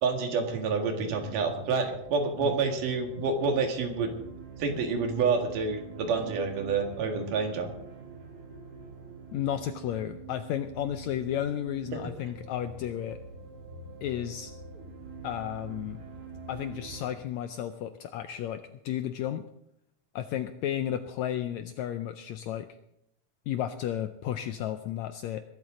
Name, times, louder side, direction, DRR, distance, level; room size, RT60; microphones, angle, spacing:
voice 1, 0.0-4.1 4.6-7.7, right 4 dB, 75° right, 4 dB, 3.4 m, -28 dB
sound 1, 1.1-17.1, right 4 dB, 30° right, 2.9 m, -45 dB
voice 2, 9.3-13.2 14.0-14.5 15.2-16.0 16.5-19.5 20.1-22.7 23.5-25.4, left 11 dB, 80° left, 9 dB, 1.6 m, -33 dB
21.5 x 12.0 x 3.8 m, 0.78 s
omnidirectional pair, 3.8 m